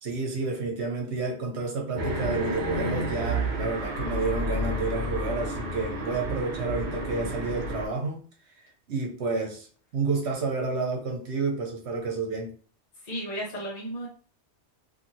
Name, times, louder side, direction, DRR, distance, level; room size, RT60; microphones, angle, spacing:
voice 1, 0.0-8.2 8.9-9.7 9.9-12.5, right 4 dB, 70° right, 1 dB, 1.1 m, -30 dB
sound 1, 2.0-7.9, equal, 50° right, 0.7 m, -30 dB
voice 2, 13.0-14.1, right 1 dB, 40° left, -4 dB, 0.8 m, -34 dB
2.8 x 2.7 x 2.7 m, 0.43 s
omnidirectional pair, 1.2 m